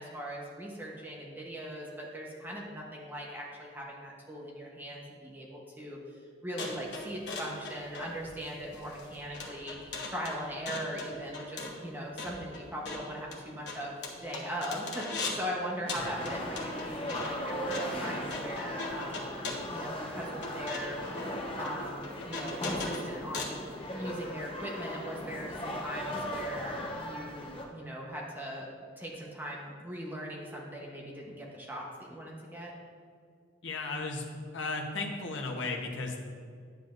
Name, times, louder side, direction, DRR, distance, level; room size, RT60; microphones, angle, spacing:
voice 1, 0.0-19.3 19.7-21.0 21.6-23.6 23.9-28.7 29.0-32.7, equal, 10° right, -3 dB, 1.0 m, -40 dB
sound 1, 6.6-15.5 15.9-23.6, left 3 dB, 65° left, 1.2 m, -40 dB
sound 2, 15.8-27.6, equal, 30° left, 0.9 m, -38 dB
voice 2, 33.6-34.3 34.5-36.2, left 3 dB, 85° left, 1 dB, 1.0 m, -35 dB
10.5 x 7.5 x 2.6 m, 2.2 s
head